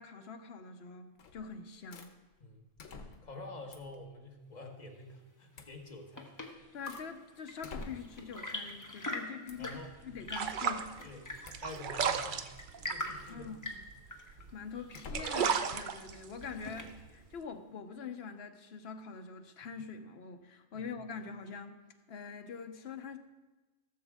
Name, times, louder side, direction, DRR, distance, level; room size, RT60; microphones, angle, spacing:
voice 1, 0.0-2.1 6.7-11.1 13.3-13.8 14.1-21.8 22.1-23.2, left 5 dB, 60° left, 6 dB, 1.0 m, -45 dB
sound 1, 1.2-1.5 1.9-2.1 2.8-3.4 3.7-4.0 5.5-5.8 6.3-7.1 7.6-8.3 9.5-9.7 11.4-11.9 13.2-13.5 14.9-15.6, left 3 dB, 85° left, 1.3 m, -48 dB
voice 2, 2.4-6.4 9.6-9.9 11.0-13.6 20.7-20.9, left 2 dB, 35° left, 1 dB, 1.4 m, -48 dB
Chirp tweet / Engine / Tap, 5.7-17.2, left 1 dB, 15° left, 1.0 m, -45 dB
sound 2, 9.5-14.6 14.9-17.4, right 6 dB, 55° right, 0.6 m, -35 dB
16.5 x 7.2 x 3.6 m, 1.2 s
omnidirectional pair, 1.3 m